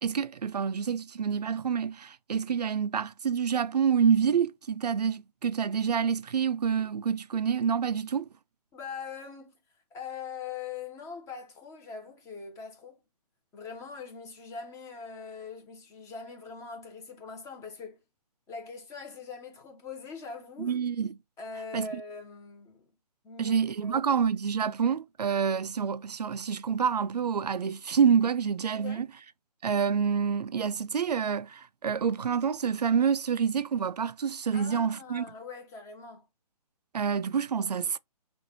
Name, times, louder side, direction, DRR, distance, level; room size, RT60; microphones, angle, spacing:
voice 1, 0.0-8.3 20.6-21.2 21.7-21.9 23.4-29.1 29.6-35.2 36.9-38.0, right 7 dB, 80° right, 0.4 m, -27 dB
voice 2, 8.7-9.5 9.9-13.0 13.5-18.0 18.5-20.8 21.4-22.8 23.2-23.6 23.8-24.0 28.7-29.1 34.5-36.3, left 5 dB, 15° left, 1.1 m, -42 dB
6.1 x 2.5 x 3.0 m
figure-of-eight pair, 135°, 20 cm